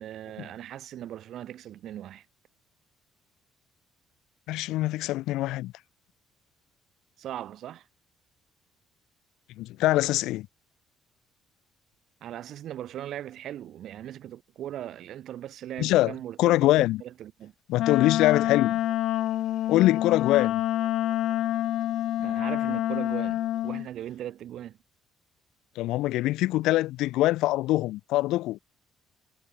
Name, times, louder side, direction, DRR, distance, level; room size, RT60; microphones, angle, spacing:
voice 1, 0.0-2.2 7.2-7.9 12.2-17.5 22.2-24.8, right 11 dB, 55° right, 7.5 m, -39 dB
voice 2, 4.5-5.7 9.6-10.5 15.8-16.1 16.4-17.0 17.7-18.8 19.7-20.6 25.8-28.6, left 17 dB, 90° left, 2.3 m, -23 dB
Wind instrument woodwind instrument, 17.8-23.9, left 13 dB, 65° left, 3.1 m, -27 dB
cardioid pair, 155°, 0 cm